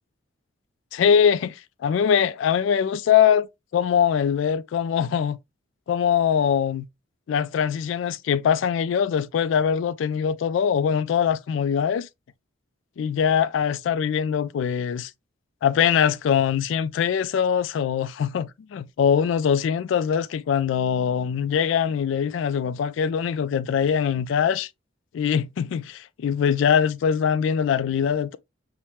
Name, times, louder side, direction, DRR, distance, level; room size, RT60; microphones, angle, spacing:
voice 1, 0.9-3.5 3.7-5.4 5.9-6.9 7.3-12.1 13.0-15.1 15.6-24.7 25.1-28.4, left 8 dB, 75° left, 0.3 m, -22 dB
5.6 x 2.1 x 3.0 m
head